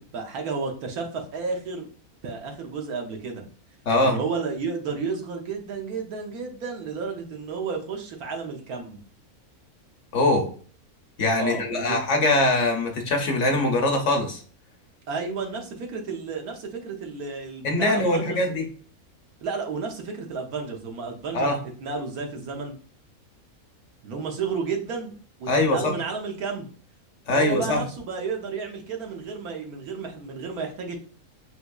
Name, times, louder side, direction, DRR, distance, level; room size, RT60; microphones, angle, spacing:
voice 1, 0.0-1.9 2.2-3.4 4.0-9.0 11.4-12.0 15.1-18.6 19.4-21.5 21.8-22.7 24.0-25.1 25.4-26.7 27.3-31.0, right 4 dB, 80° right, 2 dB, 1.3 m, -32 dB
voice 2, 3.9-4.2 10.1-10.5 11.2-14.4 17.6-18.7 21.3-21.6 25.5-25.9 27.3-27.8, left 2 dB, 60° left, 4 dB, 0.9 m, -22 dB
4.0 x 2.9 x 2.2 m, 0.42 s
omnidirectional pair, 1.5 m